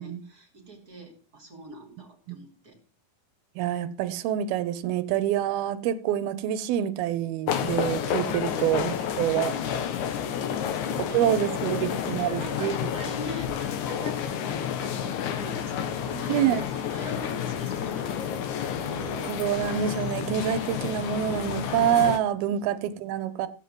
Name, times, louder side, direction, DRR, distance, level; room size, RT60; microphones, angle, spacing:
voice 1, 0.0-2.8 10.0-18.2 22.4-22.6, equal, 25° right, 3.9 m, -43 dB
voice 2, 3.6-9.5 11.0-12.9 16.3-16.6 18.8-23.5, right 10 dB, 80° right, 2.8 m, -27 dB
sound 1, 7.5-22.2, left 8 dB, 65° left, 2.2 m, -30 dB
16.0 x 5.8 x 7.8 m
omnidirectional pair, 4.4 m